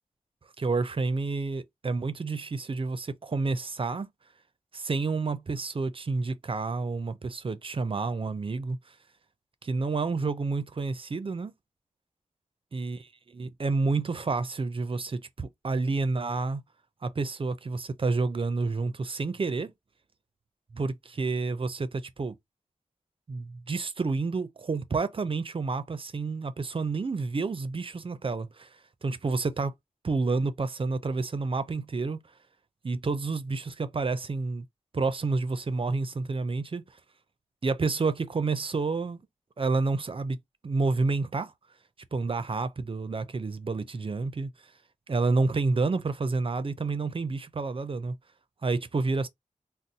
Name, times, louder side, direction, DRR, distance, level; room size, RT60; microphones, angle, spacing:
voice 1, 0.6-4.1 4.7-8.8 9.6-11.5 12.7-13.1 13.3-16.6 17.0-19.7 20.7-22.4 23.3-28.7 29.0-29.7 30.0-32.2 32.8-34.6 34.9-36.8 37.6-39.2 39.6-40.4 40.6-41.5 42.1-44.5 45.1-48.2 48.6-49.3, right 3 dB, 45° right, 0.5 m, -29 dB
2.6 x 2.0 x 3.9 m
cardioid pair, 55°, 13 cm